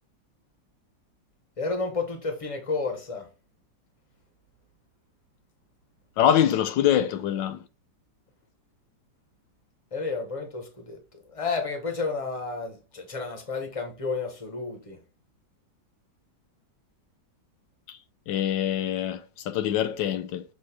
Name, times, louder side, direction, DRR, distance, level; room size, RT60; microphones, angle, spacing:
voice 1, 1.6-3.3 9.9-11.0 11.3-15.0, left 4 dB, 20° left, 1.4 m, -31 dB
voice 2, 6.2-7.6 17.9-18.0 18.3-20.4, left 10 dB, 85° left, 1.4 m, -24 dB
7.4 x 3.1 x 4.5 m
omnidirectional pair, 2.0 m